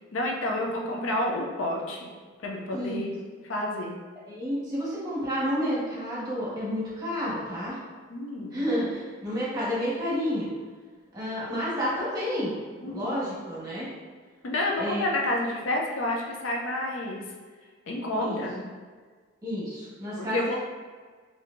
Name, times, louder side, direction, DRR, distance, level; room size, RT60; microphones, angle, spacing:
voice 1, 0.1-2.1 2.4-3.1 3.4-4.0 8.1-8.6 12.8-13.2 14.4-17.2 17.9-18.7 20.2-20.6, left 1 dB, 75° left, 0 dB, 0.5 m, -29 dB
voice 2, 2.7-3.1 4.3-7.8 8.5-10.5 11.1-12.5 12.8-13.9 14.8-15.1 18.2-18.4 19.4-20.6, equal, 20° right, -8 dB, 1.2 m, -30 dB
4.3 x 2.8 x 2.5 m, 1.5 s
head